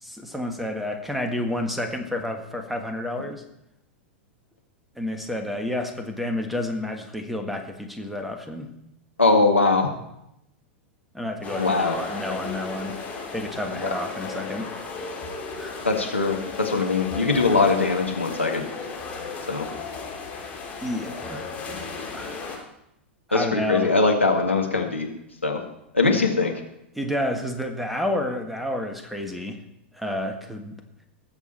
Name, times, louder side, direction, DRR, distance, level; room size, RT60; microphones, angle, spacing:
voice 1, 0.0-3.4 4.9-8.7 11.1-13.0 13.3-14.7 15.6-15.8 20.8-21.5 22.1-22.6 23.3-23.9 26.9-29.6 29.9-30.8, left 1 dB, ahead, 5 dB, 1.6 m, -30 dB
voice 2, 9.2-9.9 11.6-11.9 13.8-13.9 15.8-18.6 19.5-19.7 23.3-25.1 25.4-25.6 25.9-26.5, left 3 dB, 90° left, 1 dB, 1.9 m, -21 dB
sound 1, 11.4-22.6, left 4 dB, 25° left, 3.3 m, -35 dB
19.0 x 7.3 x 4.3 m, 0.82 s
figure-of-eight pair, 95°, 6 cm